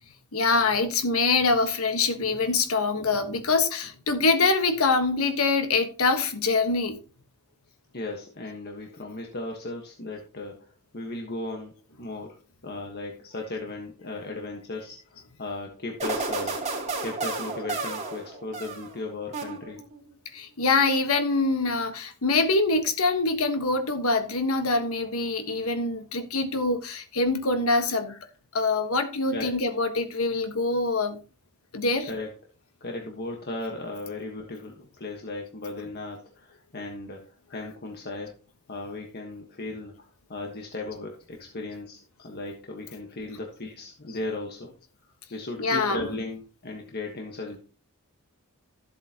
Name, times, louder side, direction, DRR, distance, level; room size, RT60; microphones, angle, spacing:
voice 1, 0.3-7.0 20.3-28.2 28.5-31.2 31.7-32.1 37.5-37.7 45.6-46.2, left 3 dB, 70° left, 1.4 m, -24 dB
voice 2, 7.9-16.7 17.0-19.8 29.3-29.6 32.0-32.4 32.8-38.3 38.7-44.7 45.3-47.6, left 2 dB, 50° left, 1.4 m, -36 dB
sound 1, 16.0-19.0 19.3-20.0, right 3 dB, 30° right, 2.9 m, -32 dB
13.5 x 7.8 x 2.9 m
head